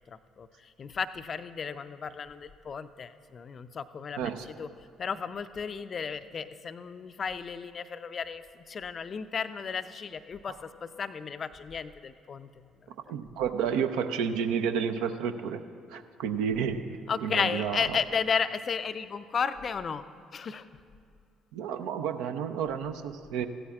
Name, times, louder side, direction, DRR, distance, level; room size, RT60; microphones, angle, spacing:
voice 1, 0.1-4.7 5.0-12.7 17.1-20.0 20.3-20.6, left 6 dB, 40° left, 13 dB, 0.4 m, -34 dB
voice 2, 13.1-15.6 15.9-17.8 21.5-23.5, right 7 dB, 65° right, 9 dB, 0.5 m, -31 dB
16.0 x 12.5 x 2.4 m, 2.3 s
figure-of-eight pair, 50°, 0 cm